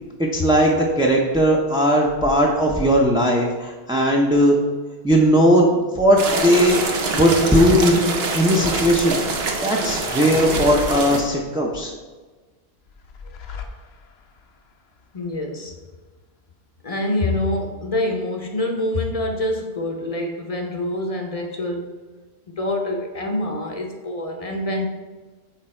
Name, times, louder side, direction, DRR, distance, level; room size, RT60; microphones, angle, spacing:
voice 1, 0.2-4.6 5.0-6.8 7.1-9.2 9.6-11.9, equal, 5° right, -2 dB, 0.4 m, -18 dB
sound 1, 6.2-11.2, right 3 dB, 70° right, 1.0 m, -25 dB
sound 2, 9.9-11.9 12.9-14.4, left 4 dB, 75° left, 0.9 m, -34 dB
voice 2, 15.1-15.7 16.8-22.0 22.5-24.9, left 1 dB, 40° left, 2 dB, 0.7 m, -26 dB
6.6 x 3.8 x 4.3 m, 1.3 s
omnidirectional pair, 1.1 m